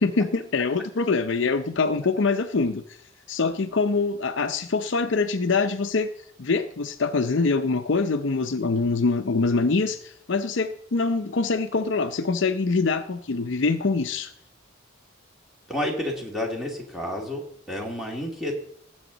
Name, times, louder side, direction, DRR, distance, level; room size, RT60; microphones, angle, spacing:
voice 1, 0.0-2.8 3.3-6.1 6.4-14.3, left 4 dB, 60° left, 9 dB, 0.6 m, -24 dB
voice 2, 15.7-18.6, left 1 dB, ahead, -1 dB, 2.5 m, -30 dB
18.5 x 8.0 x 4.0 m, 0.69 s
head